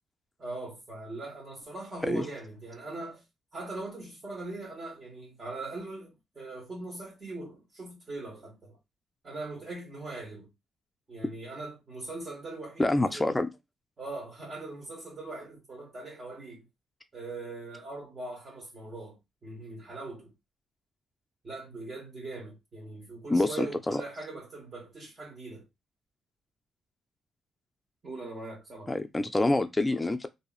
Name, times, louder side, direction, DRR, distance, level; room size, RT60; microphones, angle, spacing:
voice 1, 0.4-3.2 3.5-8.8 9.2-10.5 11.1-13.3 14.0-16.6 17.1-20.3 21.4-25.7 28.0-28.9, right 2 dB, 35° right, 1.2 m, -41 dB
voice 2, 12.8-13.5 23.3-24.0 28.9-30.3, left 2 dB, 15° left, 0.4 m, -26 dB
2.9 x 2.7 x 2.4 m
cardioid pair, 90°, 0 cm